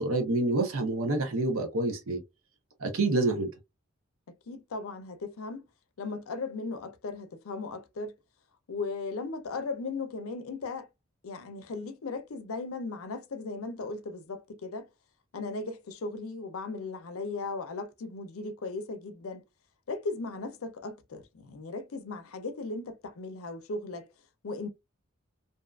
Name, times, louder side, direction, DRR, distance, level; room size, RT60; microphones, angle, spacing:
voice 1, 0.0-2.2 2.8-3.5, right 2 dB, 80° right, 0.8 m, -27 dB
voice 2, 4.5-5.6 6.0-8.1 8.7-10.9 11.2-14.9 15.3-19.4 19.9-24.1 24.4-24.7, left 3 dB, 85° left, 0.5 m, -37 dB
2.6 x 2.4 x 2.3 m
head